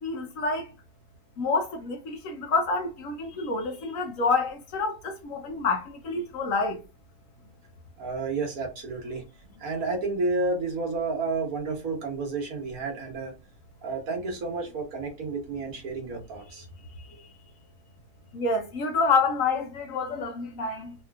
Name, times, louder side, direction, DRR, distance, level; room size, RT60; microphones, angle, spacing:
voice 1, 0.0-0.7 1.4-6.8 18.3-20.9, left 4 dB, 65° left, 1.0 m, -28 dB
voice 2, 8.0-13.3 13.8-16.7, right 3 dB, 65° right, 1.4 m, -31 dB
3.3 x 2.7 x 2.2 m
omnidirectional pair, 1.6 m